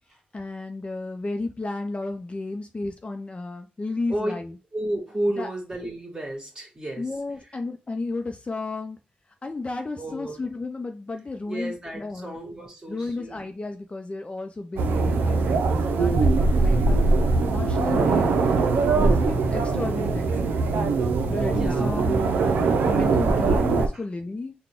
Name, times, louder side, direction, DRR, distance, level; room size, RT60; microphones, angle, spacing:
voice 1, 0.3-4.5 5.4-5.5 7.0-9.0 9.4-12.4 12.9-17.0 17.4-18.4 18.9-20.6 21.3-22.6 22.9-24.5, left 2 dB, 35° left, 0.5 m, -33 dB
voice 2, 4.7-7.1 10.0-10.4 11.5-13.5 21.6-22.0 23.9-24.0, right 1 dB, 25° right, 1.9 m, -32 dB
sound 1, 14.8-23.9, right 3 dB, 90° right, 0.5 m, -21 dB
3.8 x 2.2 x 3.6 m
cardioid pair, 50°, 3 cm